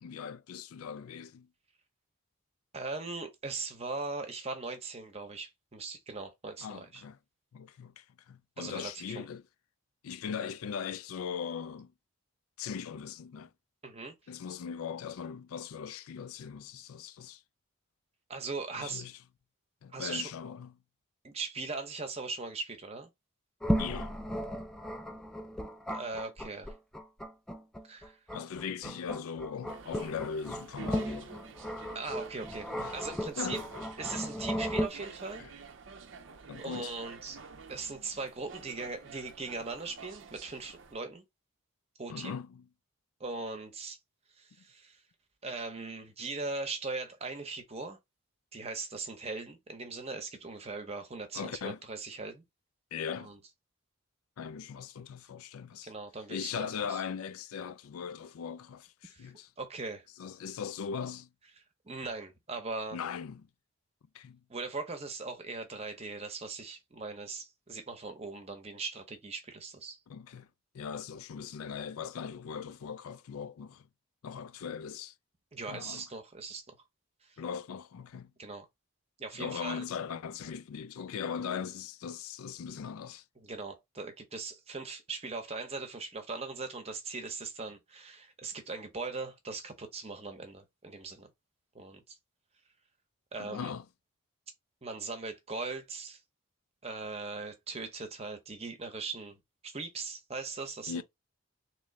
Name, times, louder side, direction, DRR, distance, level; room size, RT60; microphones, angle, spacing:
voice 1, 0.0-1.5 6.6-7.2 7.5-9.4 10.0-11.9 12.6-13.5 14.3-17.4 18.7-19.2 19.8-20.7 23.8-24.2 28.3-31.3 32.8-33.0 33.4-33.6 35.4-35.5 36.5-36.9 42.1-42.6 51.3-51.8 52.9-53.3 54.4-55.9 56.3-59.5 60.2-61.3 62.9-63.5 64.1-64.4 70.1-70.5 70.7-73.9 74.2-75.1 75.6-76.0 77.4-78.3 79.3-83.2 93.4-93.8 100.9-101.0, left 7 dB, 80° left, 0.4 m, -39 dB
voice 2, 2.7-7.0 8.6-9.3 13.8-14.1 18.3-19.1 19.9-20.3 21.2-23.1 25.9-26.7 27.8-28.2 31.9-33.6 34.0-35.4 36.6-37.4 37.7-41.2 42.0-42.3 43.2-44.0 44.4-45.0 45.4-48.0 48.5-52.4 53.2-53.4 55.8-57.0 59.1-60.1 61.8-63.0 64.5-70.0 75.5-76.8 77.2-77.4 78.4-78.7 79.2-79.9 83.4-91.3 91.7-92.2 93.3-93.7 94.8-96.2 96.8-101.0, right 3 dB, 30° right, 0.8 m, -40 dB
sound 1, 23.6-34.9, equal, 5° left, 0.4 m, -35 dB
sound 2, 29.7-41.0, right 5 dB, 60° right, 0.5 m, -50 dB
3.7 x 3.0 x 3.1 m
head